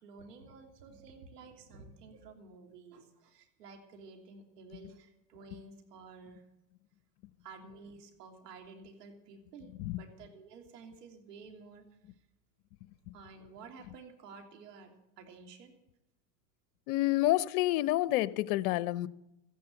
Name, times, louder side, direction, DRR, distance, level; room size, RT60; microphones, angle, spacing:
voice 1, 0.0-6.4 7.4-11.9 13.1-15.7, right 4 dB, 80° right, 3.2 m, -52 dB
voice 2, 16.9-19.1, left 16 dB, 65° left, 0.8 m, -28 dB
14.5 x 10.5 x 7.8 m
hypercardioid pair, 110°, 47 cm